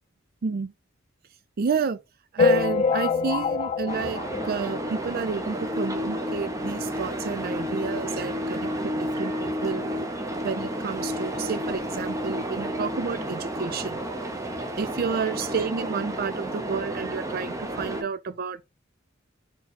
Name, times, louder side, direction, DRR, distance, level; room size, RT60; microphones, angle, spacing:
voice 1, 0.4-0.7 1.6-2.0 2.3-9.8 10.4-14.0 14.8-18.6, right 5 dB, 50° right, 0.4 m, -30 dB
sound 1, 2.4-5.2 5.7-5.8 6.0-6.2 6.4-6.5 7.4-7.5 8.0-8.1, left 4 dB, 30° left, 0.3 m, -25 dB
sound 2, 3.9-18.0, equal, 15° right, 0.7 m, -31 dB
4.4 x 2.8 x 4.0 m
head